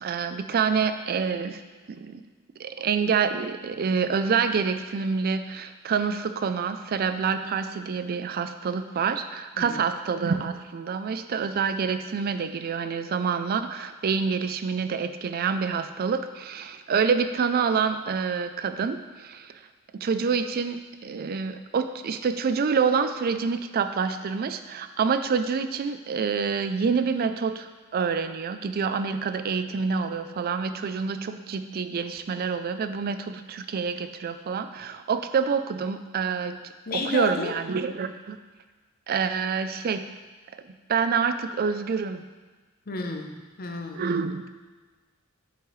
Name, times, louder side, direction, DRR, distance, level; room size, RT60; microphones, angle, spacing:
voice 1, 0.0-1.6 1.9-2.2 2.6-19.5 19.9-36.6 37.1-38.4 39.1-40.0 40.9-42.2 44.0-44.5, right 5 dB, 45° right, 10 dB, 0.4 m, -27 dB
voice 2, 36.9-37.5 42.9-44.0, left 3 dB, 45° left, 3 dB, 0.7 m, -32 dB
7.4 x 5.8 x 3.1 m, 1.3 s
head